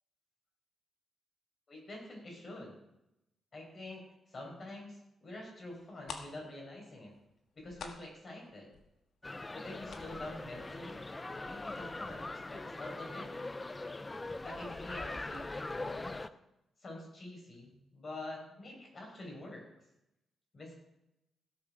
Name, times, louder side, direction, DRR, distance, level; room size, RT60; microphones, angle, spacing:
voice 1, 1.7-2.8 3.5-7.1 7.6-8.7 9.5-11.0 11.4-13.3 14.4-16.2 16.8-19.6 20.5-20.7, left 2 dB, 35° left, -1 dB, 5.6 m, -46 dB
sound 1, 5.7-5.8 6.0-11.6 11.9-12.0 12.4-12.6 12.9-13.0, left 5 dB, 65° left, 1.6 m, -49 dB
sound 2, 9.2-16.3, left 2 dB, 15° left, 0.5 m, -42 dB
17.0 x 7.9 x 6.2 m, 0.89 s
wide cardioid pair, 135°, 0 cm